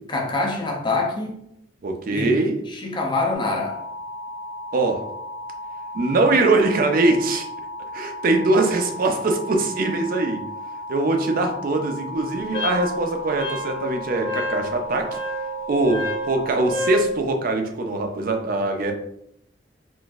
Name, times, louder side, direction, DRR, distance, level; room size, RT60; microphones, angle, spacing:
voice 1, 0.1-1.4 2.1-2.4 2.7-3.8, left 3 dB, 25° left, 1 dB, 0.5 m, -25 dB
voice 2, 1.8-2.6 4.7-5.0 5.9-7.5 7.9-10.4 10.9-15.2 15.7-18.9, right 2 dB, 50° right, 4 dB, 0.5 m, -22 dB
sound 1, 3.3-16.7, left 1 dB, 70° right, 0.9 m, -35 dB
Wind instrument woodwind instrument, 12.5-17.1, left 1 dB, 85° left, 1.4 m, -30 dB
3.8 x 2.5 x 2.4 m, 0.74 s
head